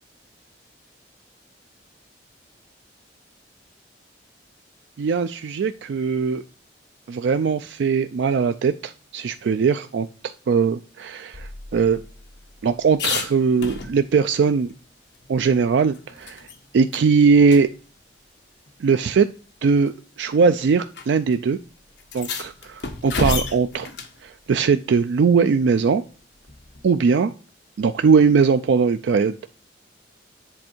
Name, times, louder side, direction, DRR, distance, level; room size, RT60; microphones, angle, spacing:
voice 1, 5.0-6.4 7.1-10.1 10.5-12.0 12.6-14.7 15.3-16.5 16.7-17.7 18.8-19.3 19.6-19.9 20.2-21.6 22.1-23.9 24.2-26.0 26.8-27.3 27.8-29.3, right 5 dB, 70° right, 10 dB, 0.3 m, -20 dB
sound 1, 11.3-14.3 14.7-14.8 15.1-16.6 16.9-17.1 17.5-17.6 18.7-18.8 19.7-19.9 20.9-21.1 21.3-21.4 22.0-24.2 26.5-26.9, left 4 dB, 65° left, 1.1 m, -31 dB
7.7 x 3.5 x 4.3 m, 0.38 s
head